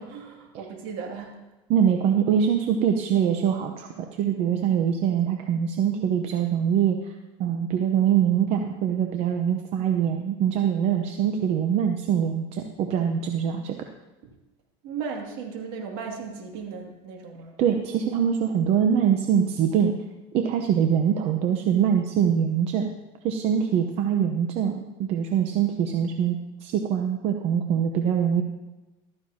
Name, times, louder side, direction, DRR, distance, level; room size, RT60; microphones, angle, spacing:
voice 1, 0.0-1.4 14.8-17.5, right 5 dB, 65° right, 1 dB, 2.5 m, -36 dB
voice 2, 1.7-7.1 7.4-13.8 17.6-19.9 20.3-22.9 23.2-28.4, right 8 dB, 45° right, 4 dB, 0.8 m, -23 dB
14.5 x 13.0 x 2.8 m, 1.1 s
supercardioid pair, 140°, 14 cm